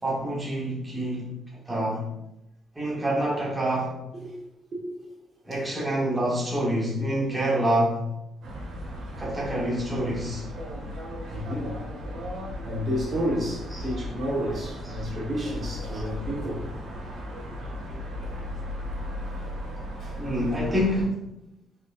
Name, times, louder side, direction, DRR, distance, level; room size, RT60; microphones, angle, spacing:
voice 1, 0.0-2.1 2.7-4.0 5.4-8.1 9.2-10.5 13.7-13.8 15.9-16.0 20.2-21.2, right 1 dB, 10° right, 1.2 m, -27 dB
voice 2, 4.7-5.1 11.3-11.8 12.4-16.7 20.0-20.2, equal, 40° right, 1.2 m, -31 dB
sound 1, 8.4-21.0, equal, 90° right, 1.6 m, -36 dB
4.7 x 4.3 x 2.4 m
cardioid pair, 145°, 0 cm